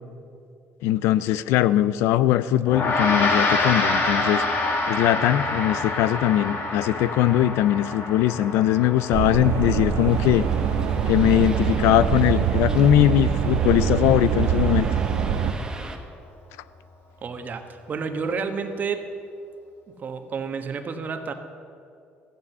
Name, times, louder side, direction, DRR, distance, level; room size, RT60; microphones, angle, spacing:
voice 1, 0.8-4.4 4.9-10.4 11.0-14.9, left 12 dB, 85° left, 16 dB, 0.4 m, -21 dB
Gong, 2.7-12.3, left 2 dB, 60° left, 2.1 m, -27 dB
sound 1, 9.1-15.5, right 8 dB, 70° right, 1.0 m, -24 dB
sound 2, 10.1-16.0, right 2 dB, 15° right, 1.3 m, -40 dB
voice 2, 17.2-19.1 20.0-21.3, right 5 dB, 40° right, 7 dB, 1.2 m, -30 dB
13.0 x 9.8 x 6.8 m, 2.4 s
cardioid pair, 95°, 4 cm